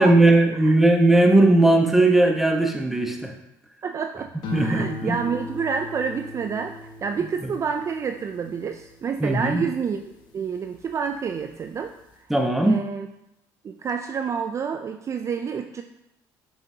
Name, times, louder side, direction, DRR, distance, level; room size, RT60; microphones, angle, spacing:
voice 1, 0.0-3.3 4.5-5.2 7.4-7.5 9.2-9.6 12.3-12.8, right 2 dB, 5° right, 3 dB, 1.1 m, -18 dB
voice 2, 3.8-10.0 10.3-12.2 12.6-13.1 13.6-15.8, right 6 dB, 35° right, 6 dB, 0.4 m, -29 dB
sound 1, 4.4-10.9 11.4-11.9, left 2 dB, 65° left, 1.1 m, -39 dB
7.1 x 5.7 x 2.8 m, 0.84 s
supercardioid pair, 85°, 8 cm